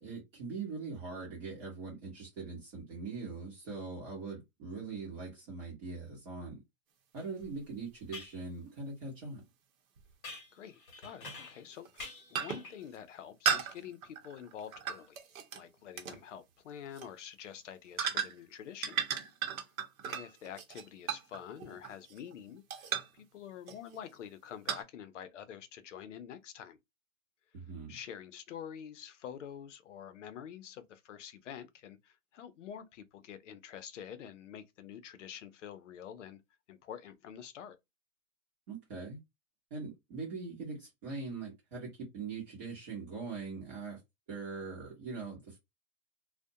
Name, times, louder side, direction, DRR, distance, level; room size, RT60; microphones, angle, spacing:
voice 1, 0.0-6.6 7.1-9.4 27.5-28.0 38.7-39.2 39.7-44.0 44.3-45.6, right 4 dB, 30° right, 0.9 m, -42 dB
sound 1, 7.2-7.3 8.1-8.4 10.2-11.7 12.0-12.9, left 3 dB, 35° left, 1.0 m, -47 dB
sound 2, 7.4-7.5 10.0-10.1 11.2-11.5 11.9-12.1 12.4-12.7 13.5-15.6 16.0-16.2 16.9-17.1 18.0-18.5 18.8-22.3 22.7-23.2 23.7-24.0 24.7-24.8, right 8 dB, 70° right, 0.8 m, -35 dB
voice 2, 10.5-15.2 15.5-19.0 20.0-26.8 27.9-36.4 36.7-37.8, left 9 dB, 55° left, 0.6 m, -47 dB
2.4 x 2.1 x 2.7 m
hypercardioid pair, 160°, 43 cm